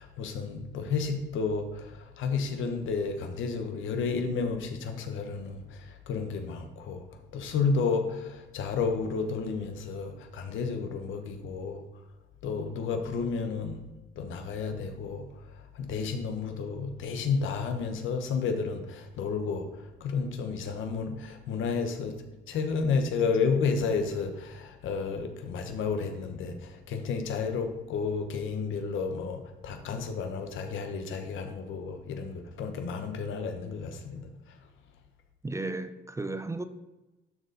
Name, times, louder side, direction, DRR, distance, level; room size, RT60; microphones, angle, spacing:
voice 1, 0.0-7.0 7.3-11.8 12.4-13.8 14.2-22.2 22.5-34.5, left 5 dB, 80° left, 1.0 m, -31 dB
voice 2, 35.4-36.6, right 2 dB, 15° right, 0.5 m, -34 dB
12.0 x 4.2 x 3.9 m
cardioid pair, 90°, 20 cm